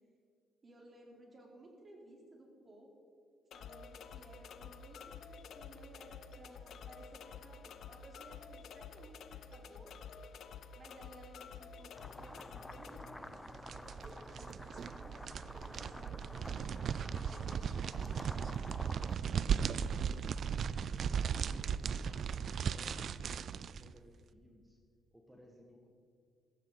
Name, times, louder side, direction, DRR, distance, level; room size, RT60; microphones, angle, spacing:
voice 1, 0.6-2.9 3.5-9.9 10.7-13.4 13.7-18.2, right 1 dB, 35° right, -1 dB, 3.8 m, -58 dB
sound 1, 3.5-13.1, left 6 dB, 70° left, 0.7 m, -50 dB
sound 2, 11.9-19.2, left 1 dB, 10° left, 0.5 m, -50 dB
sound 3, 13.2-23.9, right 7 dB, 60° right, 0.4 m, -37 dB
voice 2, 19.0-19.8 21.1-24.8 25.1-25.9, equal, 10° right, 0 dB, 1.8 m, -59 dB
15.0 x 14.5 x 4.1 m, 2.3 s
cardioid pair, 90°, 0 cm